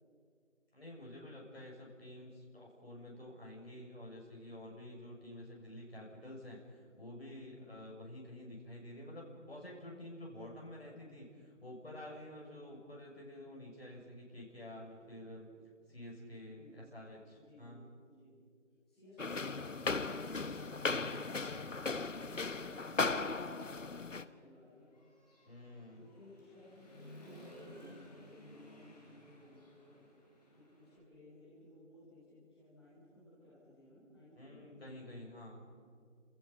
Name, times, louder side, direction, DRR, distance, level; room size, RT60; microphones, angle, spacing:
voice 1, 0.7-15.5 15.9-17.8 20.8-21.5 25.5-26.1 34.4-35.6, left 1 dB, 55° left, -2 dB, 6.6 m, -50 dB
voice 2, 14.9-15.6 15.9-16.0 16.5-16.9 17.3-18.4 18.9-21.6 22.0-24.9 25.9-30.0 30.5-35.0, left 1 dB, ahead, -15 dB, 4.8 m, -59 dB
sound 1, 19.2-24.2, left 3 dB, 80° left, 1.2 m, -37 dB
Human voice / Motorcycle, 19.7-19.8 20.3-22.0 22.4-31.0, left 1 dB, 30° left, 5.2 m, -58 dB
28.5 x 27.5 x 5.6 m, 2.2 s
figure-of-eight pair, 175°, 37 cm